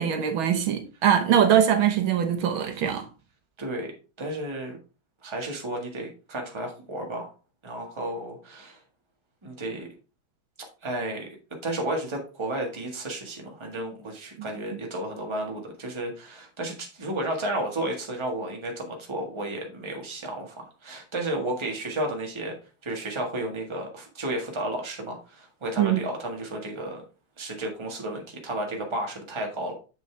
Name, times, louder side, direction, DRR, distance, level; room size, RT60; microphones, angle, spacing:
voice 1, 0.0-3.1 25.8-26.0, right 9 dB, 75° right, 1.7 m, -22 dB
voice 2, 3.6-3.9 4.2-4.8 5.2-7.3 7.6-8.8 9.4-9.9 10.8-11.3 11.6-22.5 22.8-27.0 27.4-29.7, right 1 dB, 15° right, 1.5 m, -32 dB
6.9 x 6.6 x 3.3 m
omnidirectional pair, 2.3 m